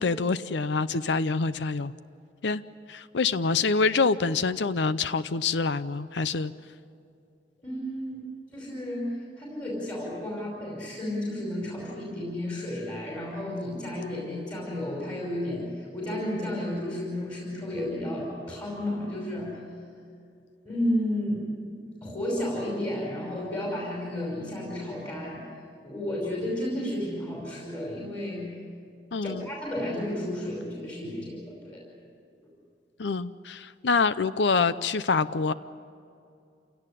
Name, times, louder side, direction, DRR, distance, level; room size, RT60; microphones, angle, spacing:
voice 1, 0.0-1.9 2.4-2.6 2.9-6.5 29.1-29.5 33.0-35.5, left 4 dB, 90° left, 14 dB, 0.6 m, -26 dB
voice 2, 7.6-8.2 8.5-19.6 20.7-21.7 22.0-25.5 25.8-28.5 29.2-31.8, left 1 dB, 25° left, -4 dB, 5.2 m, -32 dB
27.5 x 17.5 x 10.0 m, 2.4 s
head